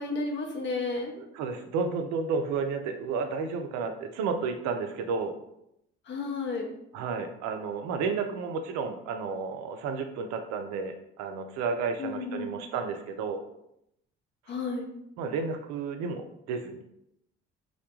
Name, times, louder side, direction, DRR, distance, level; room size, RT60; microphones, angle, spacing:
voice 1, 0.0-1.1 6.1-6.6 12.0-12.6 14.5-14.9, left 3 dB, 35° left, 2 dB, 0.6 m, -32 dB
voice 2, 1.2-5.3 6.9-13.4 15.2-16.8, right 5 dB, 55° right, 6 dB, 0.5 m, -32 dB
2.2 x 2.1 x 2.9 m, 0.79 s
hypercardioid pair, 50°, 33 cm